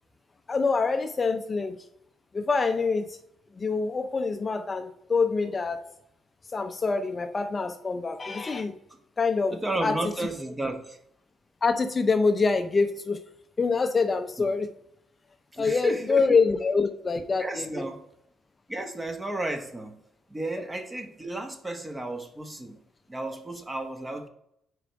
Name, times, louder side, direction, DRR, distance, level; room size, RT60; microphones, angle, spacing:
voice 1, 0.5-1.8 2.3-3.1 3.6-5.8 6.5-8.7 9.2-10.0 11.6-13.2 13.6-14.7 15.6-17.8, left 4 dB, 30° left, 8 dB, 0.5 m, -25 dB
voice 2, 9.5-11.0 14.4-14.5 15.5-16.3 17.4-18.0 18.7-20.0 20.3-22.8 23.1-24.3, right 1 dB, 20° right, 5 dB, 1.0 m, -33 dB
4.9 x 4.6 x 5.0 m, 0.76 s
cardioid pair, 90°, 0 cm